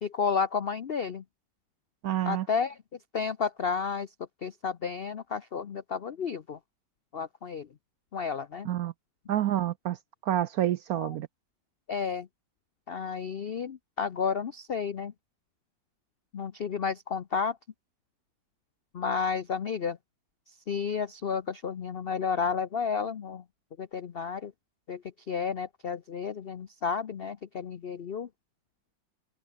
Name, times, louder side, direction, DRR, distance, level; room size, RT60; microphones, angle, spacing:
voice 1, 0.0-1.2 2.2-2.8 3.1-4.1 4.4-6.6 7.1-7.7 8.1-8.7 11.0-11.1 11.9-12.3 12.9-15.1 16.3-17.6 18.9-20.0 20.5-23.4 23.8-24.5 24.9-28.3, left 6 dB, 85° left, 0.5 m, -32 dB
voice 2, 2.0-2.5 8.7-8.9 9.3-11.3, right 12 dB, 70° right, 0.9 m, -28 dB
omnidirectional pair, 2.1 m